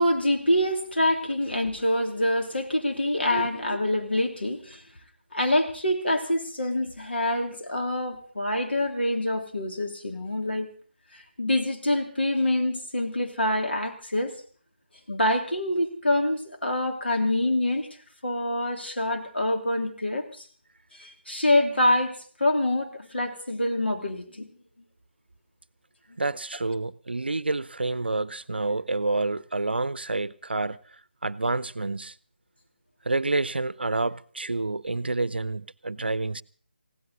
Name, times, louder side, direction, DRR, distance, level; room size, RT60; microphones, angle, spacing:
voice 1, 0.0-4.8 5.3-10.7 11.1-14.3 15.1-17.9 18.2-20.5 20.9-24.5, left 1 dB, 65° left, 3.1 m, -26 dB
voice 2, 26.2-30.8 31.2-32.1 33.1-36.4, right 2 dB, 65° right, 0.7 m, -28 dB
20.0 x 16.5 x 4.2 m
figure-of-eight pair, 155°, 6 cm